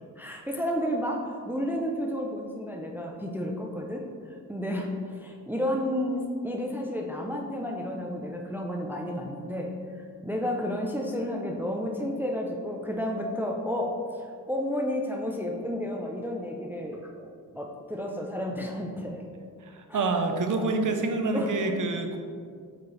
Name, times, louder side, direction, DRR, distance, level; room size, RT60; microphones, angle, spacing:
voice 1, 0.2-4.0 4.5-9.7 10.2-13.9 14.5-19.2 19.9-20.2 20.6-21.0 21.3-21.7, equal, 5° right, 1 dB, 0.6 m, -31 dB
voice 2, 19.6-22.2, right 3 dB, 50° right, 5 dB, 0.9 m, -27 dB
8.4 x 4.3 x 3.3 m, 2.2 s
cardioid pair, 70°, 40 cm